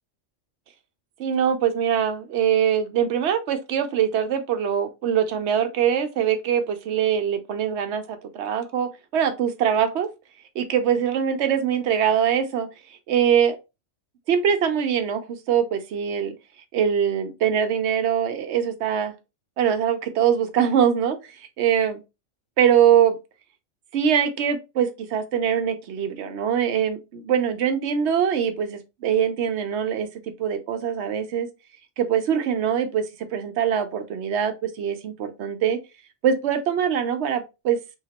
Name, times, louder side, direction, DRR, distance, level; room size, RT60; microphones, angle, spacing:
voice 1, 1.2-10.1 10.5-12.7 13.1-13.6 14.3-16.3 16.7-19.1 19.6-22.0 22.6-23.2 23.9-31.5 32.0-35.8 36.2-37.8, right 8 dB, 65° right, 0.8 m, -23 dB
3.0 x 2.8 x 2.8 m
omnidirectional pair, 1.3 m